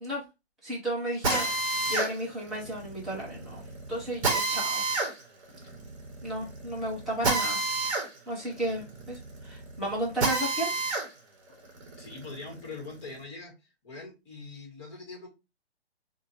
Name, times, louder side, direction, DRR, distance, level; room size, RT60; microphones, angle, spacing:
voice 1, 0.6-3.6 3.9-4.9 6.2-7.7 8.3-10.7, right 1 dB, ahead, -11 dB, 0.6 m, -33 dB
sound 1, 1.2-2.4 2.6-2.7, left 4 dB, 70° left, 0.9 m, -39 dB
Drill, 1.2-11.1 11.5-13.1, right 3 dB, 30° right, 1.1 m, -30 dB
voice 2, 12.0-13.6 13.8-15.3, left 3 dB, 25° left, -1 dB, 1.6 m, -43 dB
4.5 x 2.5 x 2.9 m, 0.25 s
figure-of-eight pair, 150°, 33 cm